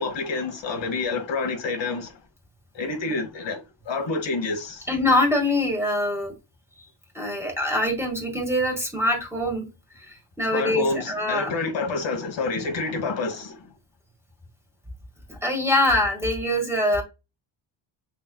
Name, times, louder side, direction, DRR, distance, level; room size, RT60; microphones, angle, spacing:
voice 1, 0.0-2.1 2.7-4.8 10.5-13.6, left 3 dB, 70° left, 1.4 m, -28 dB
voice 2, 4.9-6.3 7.1-9.6 10.0-11.5 15.3-17.0, left 1 dB, 5° right, 1.8 m, -24 dB
6.1 x 3.3 x 2.3 m
cardioid pair, 120°, 46 cm